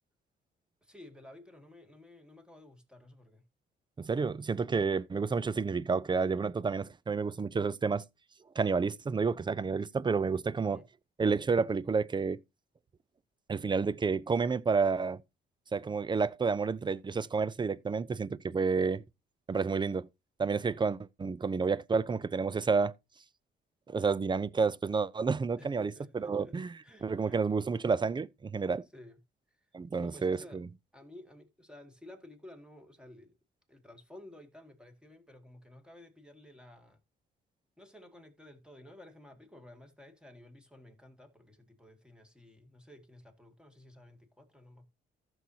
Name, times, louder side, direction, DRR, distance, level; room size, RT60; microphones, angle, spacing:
voice 1, 0.8-3.4 10.7-10.9 25.6-27.4 28.9-29.2 29.5-29.7 30.0-30.6 30.9-33.4 33.7-37.0 37.8-44.9, left 1 dB, 5° right, 2.1 m, -54 dB
voice 2, 4.0-8.0 8.6-10.8 11.2-12.4 13.5-15.2 15.7-19.0 19.5-20.1 20.4-22.9 23.9-26.7 27.0-28.8 29.7-30.7, right 5 dB, 25° right, 0.5 m, -30 dB
14.5 x 6.3 x 2.8 m
cardioid pair, 90°, 20 cm